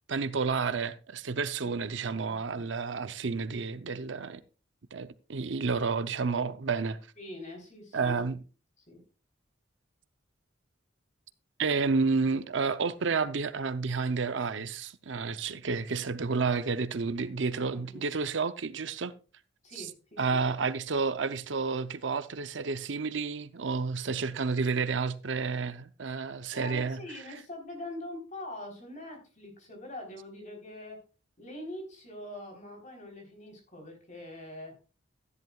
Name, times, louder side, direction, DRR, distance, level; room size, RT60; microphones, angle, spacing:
voice 1, 0.1-4.4 4.9-7.0 7.9-8.4 11.6-19.1 19.8-19.9 20.2-27.0, right 4 dB, 70° right, 0.6 m, -30 dB
voice 2, 1.6-2.7 7.2-8.2 8.9-9.0 17.5-18.1 19.6-20.4 26.5-31.0 31.4-34.7, left 1 dB, 40° left, 3.8 m, -44 dB
13.5 x 11.0 x 2.4 m
head